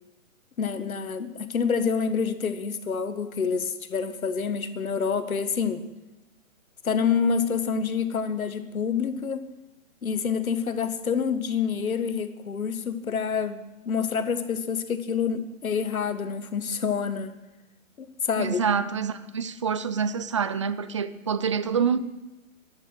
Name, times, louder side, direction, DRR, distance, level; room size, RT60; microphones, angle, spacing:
voice 1, 0.6-5.8 6.8-9.5 10.0-17.3 18.0-18.6, left 6 dB, 90° left, 11 dB, 1.7 m, -27 dB
voice 2, 18.4-22.0, right 6 dB, 25° right, 14 dB, 0.4 m, -26 dB
15.5 x 11.5 x 6.5 m, 1.0 s
hypercardioid pair, 150°, 41 cm